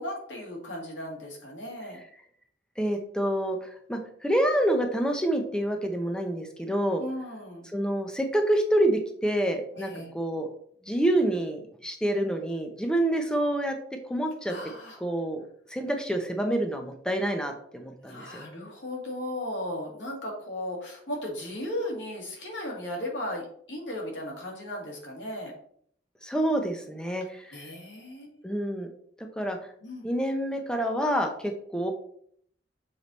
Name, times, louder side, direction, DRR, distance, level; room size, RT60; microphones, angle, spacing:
voice 1, 0.0-2.0 7.0-7.7 9.7-10.1 14.5-15.0 17.9-25.5 27.5-28.4 29.8-30.1, left 1 dB, 85° left, -2 dB, 2.5 m, -36 dB
voice 2, 2.8-7.0 7.7-10.5 10.9-13.8 14.1-14.5 15.0-15.4 15.7-18.5 26.2-27.7 28.4-28.9 29.2-29.6 30.0-31.9, right 1 dB, 5° left, 4 dB, 0.7 m, -27 dB
6.9 x 4.7 x 4.1 m, 0.63 s
head